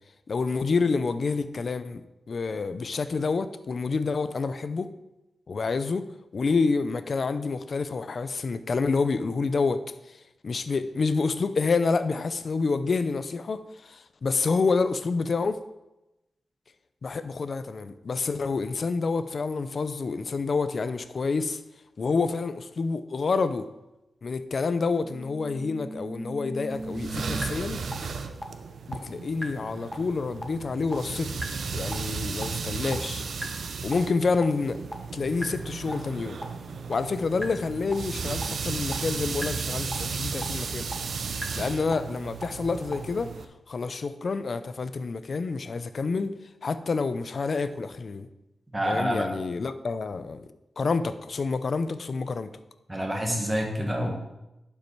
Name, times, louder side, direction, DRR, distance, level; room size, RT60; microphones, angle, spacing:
voice 1, 0.3-2.0 2.3-4.9 5.5-6.1 6.3-9.8 10.1-10.2 10.4-15.6 17.0-21.6 22.0-23.7 24.2-27.8 28.9-31.4 31.7-33.3 33.8-34.8 35.1-36.4 36.9-40.9 41.6-43.3 43.7-46.3 46.6-48.3 48.8-50.5 50.8-52.5, left 4 dB, 50° left, 0.5 m, -28 dB
sound 1, 25.0-27.4 27.9-28.0 28.4-28.5 28.9-29.0 29.4-29.5 29.9-30.0 30.4-30.5 30.9-31.0 31.4-31.5 31.9-32.0 32.4-32.5 32.9-33.0 33.4-33.5 33.9-34.0 34.4-34.5 34.9-35.0 35.4-35.5 35.9-36.0 36.4-36.5 36.9-37.0 37.4-37.5 37.9-38.0 38.4-38.5 38.9-39.0 39.4-39.5 39.9-40.0 40.4-40.5 40.9-41.0 41.4-41.5 41.9-42.0 42.4-42.5 42.9-43.0, equal, 5° left, 1.1 m, -35 dB
sound 2, 26.7-43.5, right 5 dB, 70° right, 0.6 m, -34 dB
voice 2, 48.7-49.3 52.9-54.1, equal, 15° right, 1.6 m, -27 dB
11.5 x 5.5 x 4.6 m
wide cardioid pair, 140°, 0 cm